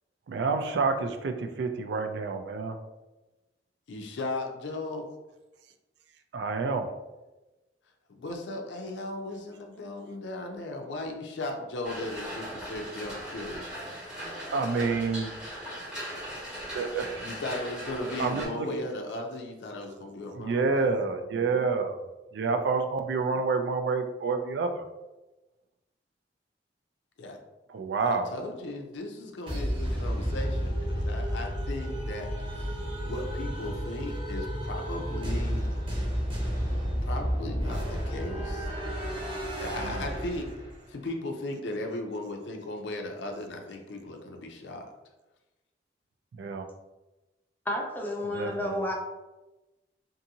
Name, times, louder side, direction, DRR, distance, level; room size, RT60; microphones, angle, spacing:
voice 1, 0.3-2.8 6.3-6.9 14.5-15.4 16.7-17.3 18.2-18.8 20.3-24.9 27.7-28.3 39.8-40.1 46.3-46.7 48.2-48.9, right 4 dB, 70° right, 6 dB, 0.3 m, -29 dB
voice 2, 3.9-5.0 8.1-13.7 17.2-20.8 27.2-27.4 28.0-35.7 36.7-38.7 39.6-40.5 40.9-44.9, left 2 dB, 90° left, 3 dB, 0.4 m, -37 dB
sound 1, 11.8-18.5, equal, 5° right, 0.9 m, -39 dB
sound 2, 29.5-40.9, equal, 30° right, 0.9 m, -31 dB
voice 3, 47.7-48.9, left 1 dB, 10° left, 0 dB, 0.5 m, -31 dB
2.6 x 2.6 x 2.7 m, 1.1 s
head